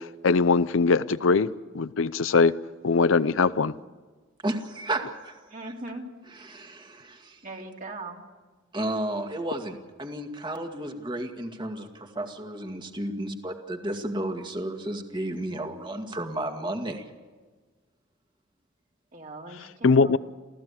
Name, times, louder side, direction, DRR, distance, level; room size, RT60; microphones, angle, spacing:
voice 1, 0.0-1.5 1.7-2.5 2.8-3.8 19.8-20.2, left 4 dB, 80° left, 16 dB, 0.6 m, -21 dB
voice 2, 4.4-5.4 5.6-5.7 6.3-7.4 8.7-17.1, right 1 dB, 25° right, 4 dB, 2.1 m, -33 dB
voice 3, 5.5-6.1 7.4-8.2 19.1-20.1, right 2 dB, 40° right, 0 dB, 3.1 m, -39 dB
28.5 x 15.5 x 8.5 m, 1.4 s
head